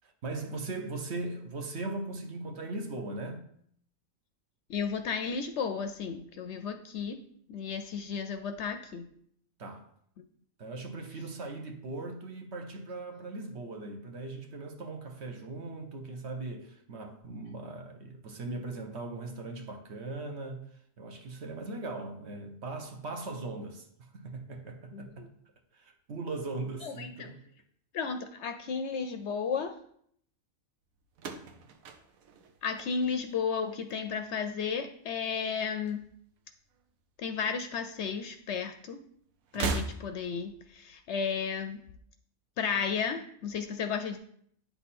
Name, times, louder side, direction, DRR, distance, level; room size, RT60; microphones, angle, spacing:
voice 1, 0.0-3.5 9.6-9.9 10.6-20.7 21.0-25.3 25.7-27.4, right 2 dB, 55° right, 1.0 m, -39 dB
voice 2, 4.7-7.2 7.5-9.1 24.9-25.3 26.8-27.3 27.9-29.8 32.6-36.0 37.2-39.0 39.5-41.8 42.6-44.2, left 6 dB, 65° left, 0.7 m, -33 dB
sound 1, 31.1-33.5 33.8-34.4 35.4-36.5 36.7-36.8 38.0-38.1 39.4-40.5, right 4 dB, 85° right, 1.1 m, -37 dB
8.7 x 3.5 x 4.2 m
omnidirectional pair, 1.4 m